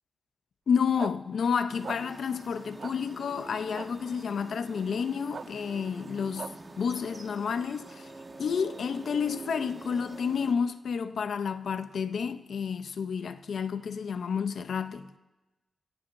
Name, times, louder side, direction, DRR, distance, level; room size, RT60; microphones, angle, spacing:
voice 1, 0.7-6.5 6.8-8.1 8.4-15.2, left 6 dB, 80° left, 0.6 m, -30 dB
sound 1, 1.0-1.1 1.8-2.0 2.8-2.9 3.7-3.9 5.3-5.5 6.4-6.5, right 5 dB, 50° right, 0.4 m, -37 dB
sound 2, 1.7-10.5, right 2 dB, 30° right, 1.2 m, -45 dB
27.0 x 14.5 x 2.6 m
wide cardioid pair, 170°, 0 cm